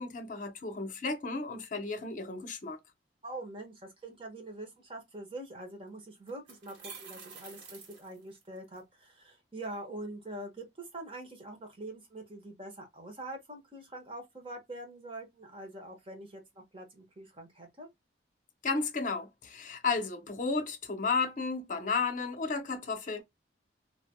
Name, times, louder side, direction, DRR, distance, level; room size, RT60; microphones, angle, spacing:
voice 1, 0.0-2.8 18.6-23.2, left 4 dB, 45° left, 0.7 m, -33 dB
voice 2, 3.2-17.9, right 1 dB, 30° right, 1.2 m, -44 dB
sound 1, 5.6-5.7 6.3-8.8, right 5 dB, 85° right, 1.2 m, -49 dB
3.3 x 2.9 x 2.2 m
head